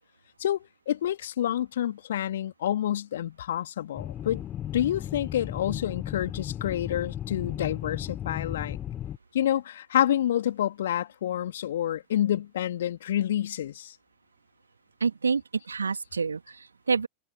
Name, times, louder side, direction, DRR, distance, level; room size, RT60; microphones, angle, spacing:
voice 1, 0.4-4.4 4.7-8.8 9.3-13.9, left 11 dB, 60° left, 2.8 m, -28 dB
sound 1, 4.0-9.2, left 11 dB, 30° left, 3.5 m, -35 dB
voice 2, 15.0-15.4 15.7-17.1, right 5 dB, 75° right, 2.4 m, -27 dB
figure-of-eight pair, 90°, 0 cm